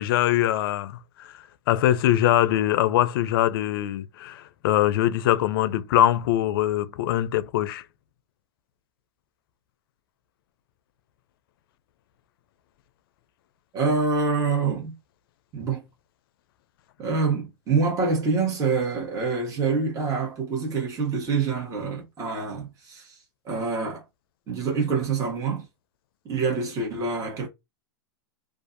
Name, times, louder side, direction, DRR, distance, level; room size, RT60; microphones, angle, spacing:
voice 1, 0.0-1.3 1.7-7.8, left 12 dB, 70° left, 0.4 m, -22 dB
voice 2, 13.7-14.9 15.5-15.8 17.0-23.2 23.4-24.0 24.5-25.7 26.2-27.5, right 4 dB, 25° right, 1.1 m, -26 dB
2.5 x 2.4 x 2.5 m
hypercardioid pair, 115°, 13 cm